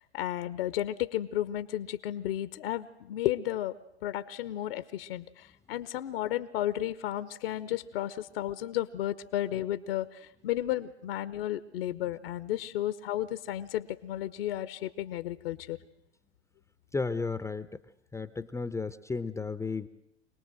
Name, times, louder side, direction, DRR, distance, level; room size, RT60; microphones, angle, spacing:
voice 1, 0.1-3.8 4.0-15.8, left 13 dB, 60° left, 15 dB, 1.1 m, -33 dB
voice 2, 16.9-17.8 18.1-19.9, left 4 dB, 10° left, 13 dB, 0.8 m, -33 dB
26.0 x 19.0 x 7.7 m, 0.83 s
figure-of-eight pair, 90°, 34 cm